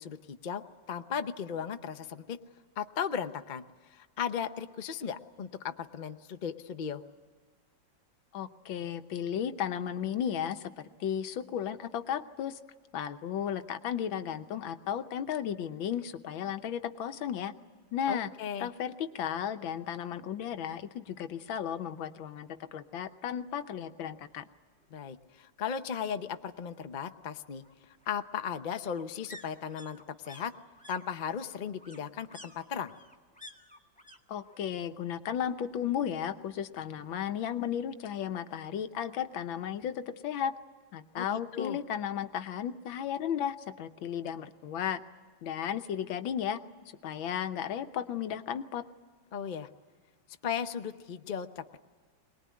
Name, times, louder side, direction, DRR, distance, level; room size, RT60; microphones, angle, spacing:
voice 1, 0.0-2.4 2.8-3.6 3.9-7.0 18.1-18.7 24.9-27.6 28.1-30.5 30.9-32.9 41.2-41.8 49.3-49.7 50.4-51.8, left 7 dB, 55° left, 8 dB, 0.5 m, -36 dB
voice 2, 8.3-10.7 11.0-12.6 12.9-17.5 17.9-18.3 18.6-24.4 34.3-40.5 40.9-45.0 45.4-46.6 47.0-48.8, left 9 dB, 85° left, 10 dB, 1.7 m, -34 dB
sound 1, 23.8-23.9 24.1-25.1 26.4-34.2 34.4-35.0 35.3-36.3 36.6-36.7, left 1 dB, 5° left, 1.3 m, -54 dB
23.0 x 20.0 x 9.5 m, 1.5 s
omnidirectional pair, 2.1 m